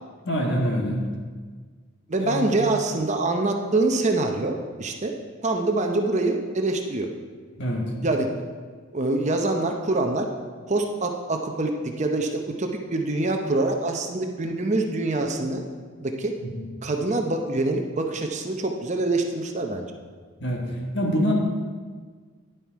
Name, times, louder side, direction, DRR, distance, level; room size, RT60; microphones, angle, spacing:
voice 1, 0.2-1.0 2.2-2.6 7.6-7.9 16.4-16.6 20.4-20.7 20.9-21.3, equal, 55° left, 0 dB, 1.6 m, -25 dB
voice 2, 2.1-5.1 5.4-7.1 8.0-8.3 8.9-10.3 10.7-15.6 16.0-16.3 16.8-19.9, right 2 dB, 35° right, 3 dB, 0.7 m, -25 dB
10.5 x 7.8 x 4.6 m, 1.5 s
head